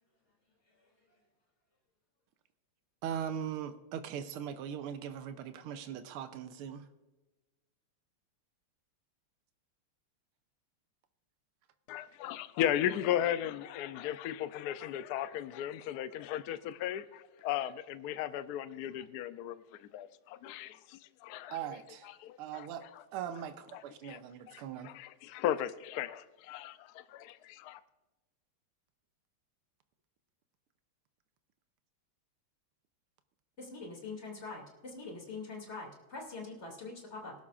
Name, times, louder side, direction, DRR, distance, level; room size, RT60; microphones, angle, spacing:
voice 1, 3.0-6.9 21.5-22.1 22.4-24.9, right 9 dB, 85° right, 10 dB, 1.7 m, -40 dB
voice 2, 11.9-19.6 19.9-21.6 22.2-22.7 24.0-24.2 24.5-27.8, left 11 dB, 85° left, 13 dB, 0.8 m, -36 dB
voice 3, 33.6-37.3, left 3 dB, 30° left, 0 dB, 2.8 m, -44 dB
19.0 x 12.0 x 2.5 m, 1.2 s
omnidirectional pair, 2.4 m